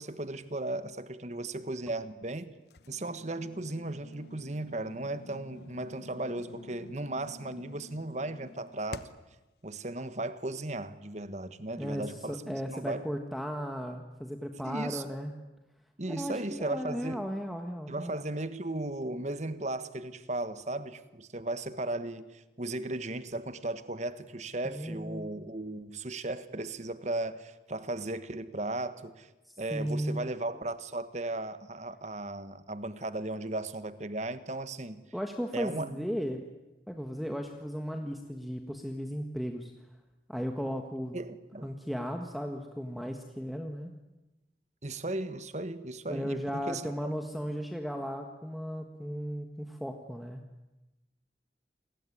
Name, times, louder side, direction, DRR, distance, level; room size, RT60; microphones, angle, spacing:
voice 1, 0.0-2.5 2.9-9.1 9.6-13.0 14.6-15.0 16.0-17.3 17.9-29.3 29.6-35.0 35.5-36.1 41.1-41.7 44.8-47.1, right 2 dB, 40° right, 1.4 m, -36 dB
sound 1, 2.7-9.4, left 3 dB, 70° left, 1.0 m, -49 dB
voice 2, 11.8-15.3 16.1-18.1 24.7-25.3 29.4-30.2 35.1-36.4 36.9-39.7 40.3-41.2 41.6-43.9 46.1-50.4, equal, ahead, 1.5 m, -36 dB
29.0 x 21.0 x 9.9 m
head